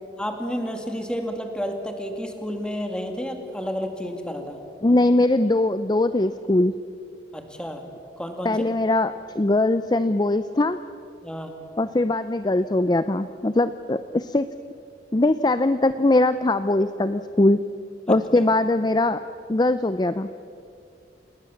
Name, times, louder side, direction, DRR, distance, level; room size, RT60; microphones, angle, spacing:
voice 1, 0.2-4.6 7.3-7.8 8.2-8.6 11.2-11.5 18.4-18.5, equal, 5° left, 4 dB, 2.3 m, -31 dB
voice 2, 4.8-6.7 8.4-10.8 11.8-14.5 15.1-17.6 18.1-19.2 19.5-20.3, left 2 dB, 25° left, 12 dB, 0.5 m, -21 dB
28.0 x 20.0 x 7.2 m, 2.4 s
head